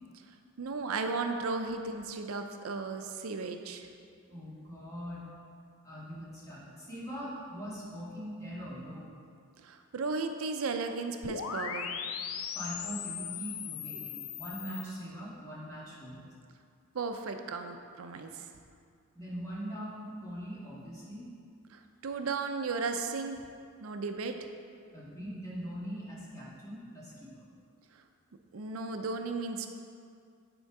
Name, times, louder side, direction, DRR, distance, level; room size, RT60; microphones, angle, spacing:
voice 1, 0.6-3.9 9.6-12.0 16.9-18.4 21.7-23.4 23.8-24.4 28.5-29.7, right 4 dB, 85° right, 6 dB, 0.5 m, -35 dB
voice 2, 4.3-5.3 5.8-9.1 12.5-16.2 19.1-21.3 24.9-27.4, equal, 15° left, -8 dB, 1.8 m, -42 dB
sound 1, 11.2-14.8, left 7 dB, 85° left, 0.5 m, -38 dB
9.0 x 4.4 x 4.7 m, 2.3 s
head